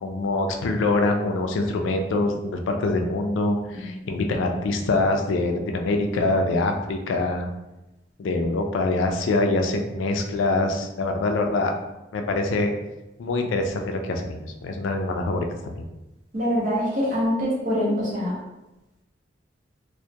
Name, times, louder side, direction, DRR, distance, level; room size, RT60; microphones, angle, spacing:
voice 1, 0.0-7.5 8.2-11.7 12.1-12.7 13.2-15.8, left 2 dB, 85° left, 4 dB, 0.3 m, -24 dB
voice 2, 3.7-4.1 6.1-6.4 16.3-18.3, equal, 45° right, -5 dB, 0.8 m, -25 dB
2.2 x 2.1 x 2.7 m, 0.98 s
head